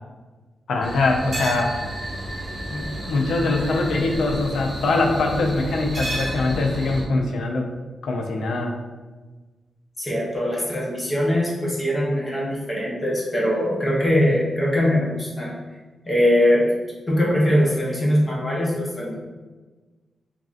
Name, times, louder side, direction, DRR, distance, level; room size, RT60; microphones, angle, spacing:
voice 1, 0.7-1.7 2.7-7.7 8.0-8.8, left 2 dB, 85° left, 2 dB, 0.4 m, -23 dB
sound 1, 0.8-7.0, right 1 dB, 35° right, 0.8 m, -31 dB
voice 2, 10.0-15.5 16.1-16.7 17.1-19.1, left 1 dB, 25° left, -4 dB, 0.8 m, -21 dB
3.1 x 2.5 x 2.4 m, 1.3 s
cardioid pair, 95°, 0 cm